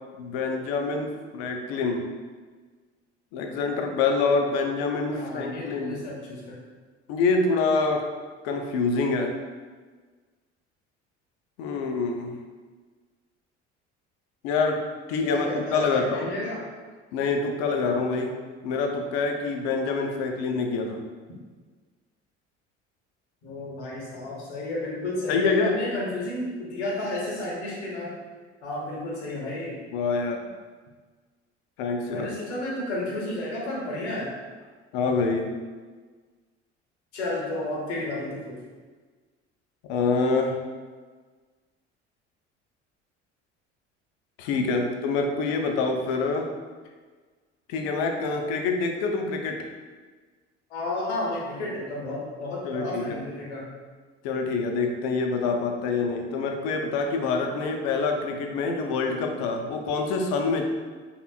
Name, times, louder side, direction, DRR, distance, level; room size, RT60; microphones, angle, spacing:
voice 1, 0.2-2.1 3.3-6.0 7.1-8.0 8.4-9.3 11.6-12.4 14.4-14.8 15.1-16.3 17.1-18.3 18.6-21.0 25.3-25.7 29.9-30.4 31.8-32.3 34.9-35.5 39.9-40.6 44.4-46.5 47.7-49.6 52.6-53.2 54.2-60.6, left 4 dB, 55° left, 3 dB, 0.5 m, -26 dB
voice 2, 5.1-6.6 15.2-16.6 23.4-28.2 28.6-29.8 32.1-34.3 37.1-38.6 50.7-53.7, left 1 dB, 70° left, -4 dB, 0.9 m, -32 dB
3.3 x 2.8 x 2.3 m, 1.4 s
figure-of-eight pair, 60°, 35 cm